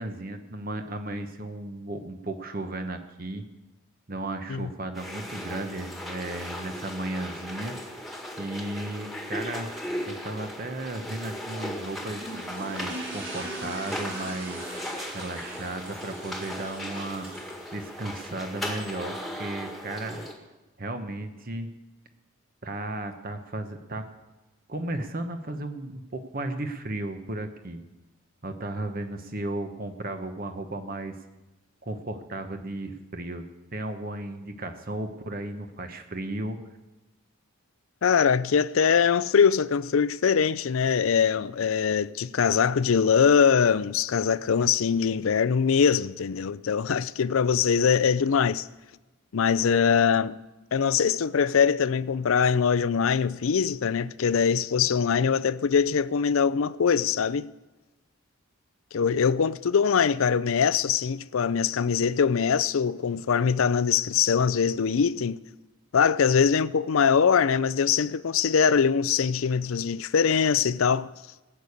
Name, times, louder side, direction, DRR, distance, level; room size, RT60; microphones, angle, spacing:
voice 1, 0.0-3.4 4.1-7.8 8.4-9.7 10.1-14.7 15.1-17.4 17.7-20.2 20.8-21.7 22.6-24.0 24.7-27.8 28.4-31.1 31.8-33.4 33.7-36.6, right 2 dB, 40° right, 1.0 m, -35 dB
sound 1, 4.9-20.3, equal, ahead, 1.6 m, -37 dB
sound 2, 12.1-18.7, right 1 dB, 60° right, 4.9 m, -41 dB
voice 2, 38.0-48.7 49.3-50.4 50.7-57.5 58.9-65.4 65.9-71.1, left 6 dB, 75° left, 0.5 m, -22 dB
18.5 x 6.7 x 8.4 m
head